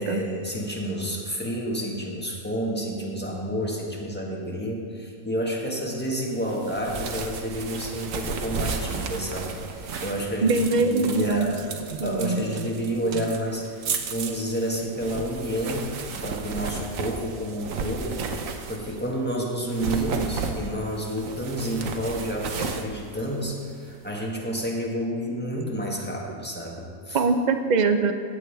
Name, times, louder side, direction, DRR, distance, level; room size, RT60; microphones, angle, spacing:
voice 1, 0.0-11.6 12.0-27.2, equal, 10° left, -3 dB, 1.4 m, -30 dB
sound 1, 6.4-19.1 19.6-23.9, right 5 dB, 70° right, 1.2 m, -33 dB
voice 2, 10.4-11.5 12.0-12.4 27.1-28.1, right 3 dB, 55° right, 7 dB, 0.5 m, -22 dB
15.0 x 9.3 x 3.4 m, 2.1 s
omnidirectional pair, 1.5 m